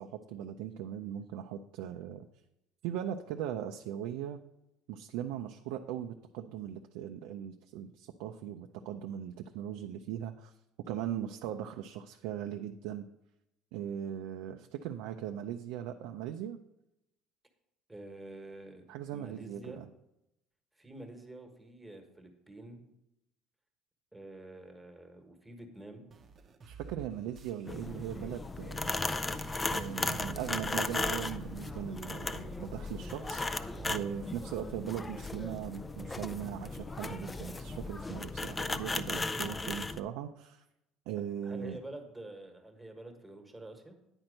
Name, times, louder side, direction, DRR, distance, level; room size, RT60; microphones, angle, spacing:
voice 1, 0.0-2.3 2.8-4.4 4.9-10.5 10.9-13.0 13.7-16.6 18.9-19.9 26.6-29.1 29.7-40.6 41.1-41.8, right 10 dB, 80° right, 5 dB, 0.5 m, -39 dB
voice 2, 17.9-18.9 19.1-19.8 20.7-22.8 24.1-26.0 41.4-44.0, right 1 dB, 5° right, 4 dB, 1.4 m, -48 dB
sound 1, 26.1-30.6 30.9-34.1, right 5 dB, 30° right, 0.8 m, -52 dB
sound 2, 27.7-40.0, left 3 dB, 15° left, 0.4 m, -36 dB
9.8 x 4.5 x 6.4 m, 0.87 s
cardioid pair, 130°, 0 cm